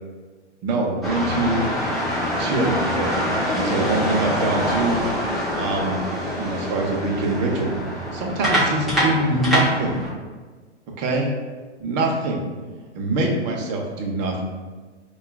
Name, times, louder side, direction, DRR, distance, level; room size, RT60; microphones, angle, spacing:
voice 1, 0.6-1.7 2.4-3.2 3.5-5.0 5.6-6.0 6.4-7.7 8.1-10.0 11.0-11.3 11.8-12.4 12.9-14.4, right 2 dB, 40° right, 0 dB, 0.7 m, -24 dB
sound 1, 1.0-10.1, equal, ahead, 0.4 m, -25 dB
5.3 x 2.3 x 2.2 m, 1.4 s
hypercardioid pair, 125°, 36 cm